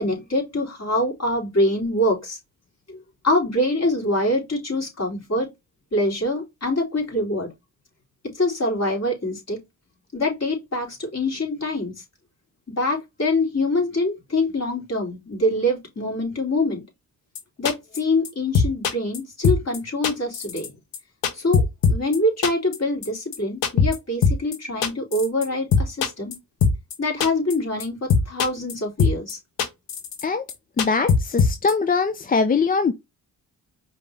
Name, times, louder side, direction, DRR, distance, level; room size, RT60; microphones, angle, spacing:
voice 1, 0.0-2.4 2.9-3.0 3.2-5.5 5.9-7.5 8.3-9.6 10.1-11.9 12.8-16.8 17.6-20.7 21.3-26.3 27.0-29.4, left 1 dB, 35° left, 3.3 m, -24 dB
sound 1, 17.3-17.4 17.6-18.0 18.2-18.3 18.5-19.2 19.4-19.8 20.0-20.7 20.9-22.2 22.4-22.8 23.0-23.1 23.3-23.4 23.6-24.0 24.2-24.6 24.8-25.4 25.7-26.3 26.6-26.9 27.2-27.5 27.8-27.9 28.1-28.7 29.0-29.3 29.6-30.2 30.5-30.6 30.8-31.7, left 5 dB, 80° left, 1.0 m, -20 dB
voice 2, 30.8-32.9, left 4 dB, 20° left, 0.4 m, -22 dB
5.0 x 2.9 x 3.3 m
supercardioid pair, 55°, 43 cm